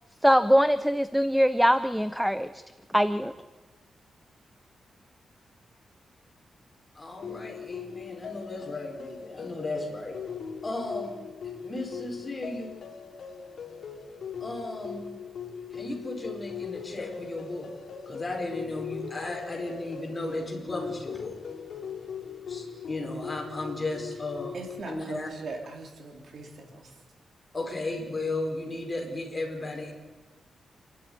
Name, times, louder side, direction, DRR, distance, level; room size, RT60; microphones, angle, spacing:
voice 1, 0.2-2.6 2.9-3.3, equal, ahead, 13 dB, 0.6 m, -22 dB
voice 2, 6.9-10.2 10.6-11.1 11.6-12.7 14.4-15.0 15.7-17.7 18.1-21.3 22.5-24.6 24.9-25.3 27.5-29.9, left 2 dB, 25° left, 1 dB, 4.7 m, -35 dB
sound 1, 7.2-24.8, left 7 dB, 65° left, 4.0 m, -40 dB
voice 3, 24.5-26.9, right 3 dB, 60° right, 3 dB, 3.8 m, -40 dB
28.5 x 12.0 x 9.4 m, 1.2 s
wide cardioid pair, 135°, 0 cm